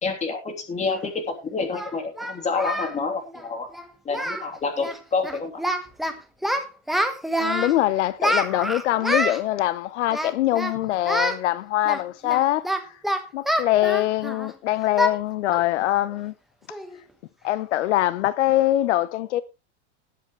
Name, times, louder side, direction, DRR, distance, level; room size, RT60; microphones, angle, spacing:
voice 1, 0.0-3.7 4.0-5.5, left 4 dB, 20° left, 3.1 m, -28 dB
Singing, 0.9-1.0 1.7-3.0 3.2-3.4 3.7-3.9 4.1-4.5 4.8-5.0 5.2-6.1 6.4-7.7 8.2-9.4 10.1-10.7 11.1-11.4 11.9-14.5 15.0-15.2 15.5-15.7 16.1-16.2 16.7-17.0, equal, ahead, 1.2 m, -26 dB
voice 2, 7.4-12.9 13.3-16.3 17.4-19.4, left 14 dB, 85° left, 0.8 m, -23 dB
18.5 x 7.9 x 3.2 m
supercardioid pair, 140°, 34 cm